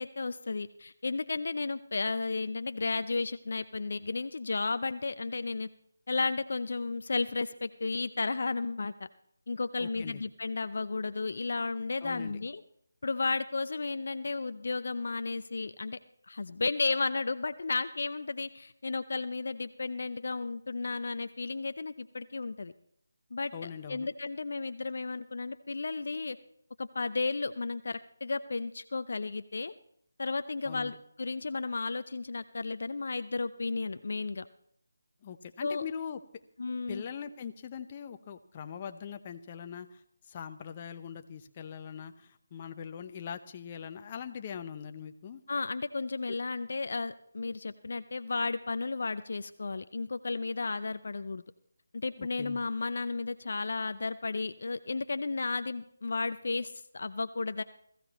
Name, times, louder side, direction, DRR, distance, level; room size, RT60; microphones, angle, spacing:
voice 1, 0.0-5.7 6.1-8.9 9.5-12.6 13.0-16.0 16.3-22.7 23.3-26.4 26.8-29.7 30.2-30.9 31.2-34.5 35.6-35.8 36.6-37.0 45.5-51.4 51.9-57.6, left 3 dB, 60° left, 12 dB, 0.6 m, -33 dB
voice 2, 9.8-10.2 12.0-12.4 23.5-24.1 30.6-31.0 35.2-36.2 36.9-40.0 40.3-45.4 46.3-46.4 52.2-52.6, left 7 dB, 30° left, 8 dB, 0.8 m, -42 dB
20.0 x 15.0 x 3.1 m, 0.70 s
figure-of-eight pair, 160°, 0 cm